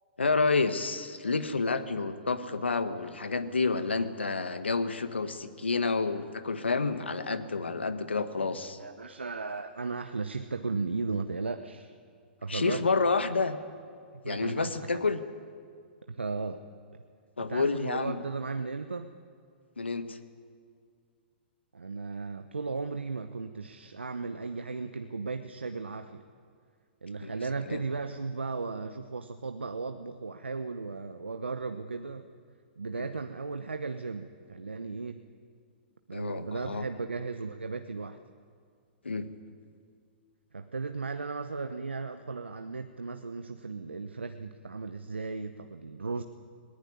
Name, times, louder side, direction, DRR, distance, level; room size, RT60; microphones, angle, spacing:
voice 1, 0.2-8.8 12.5-13.6 14.2-15.2 17.4-18.2 19.8-20.2 27.2-27.3 27.7-27.8 32.9-33.1 36.1-36.8 39.0-39.3, left 4 dB, 90° left, 10 dB, 1.6 m, -29 dB
voice 2, 8.8-12.0 12.4-12.9 14.2-14.7 16.1-16.6 17.4-19.1 21.7-26.3 27.0-32.2 32.8-35.3 36.1-38.2 40.5-46.2, right 4 dB, 90° right, 8 dB, 0.9 m, -36 dB
20.5 x 18.5 x 9.7 m, 2.2 s
hypercardioid pair, 120°, 6 cm